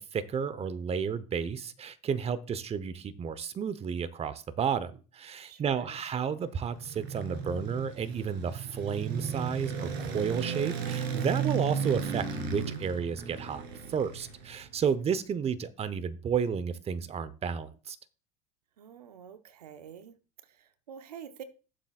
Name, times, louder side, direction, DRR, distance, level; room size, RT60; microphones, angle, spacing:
voice 1, 0.0-13.6 13.9-18.0, right 7 dB, 30° right, 0.9 m, -32 dB
voice 2, 5.4-6.0 18.8-20.2 20.4-21.4, right 8 dB, 90° right, 0.7 m, -47 dB
sound 1, 6.4-14.8, right 6 dB, 65° right, 2.3 m, -35 dB
13.5 x 7.4 x 2.4 m
hypercardioid pair, 75°, 19 cm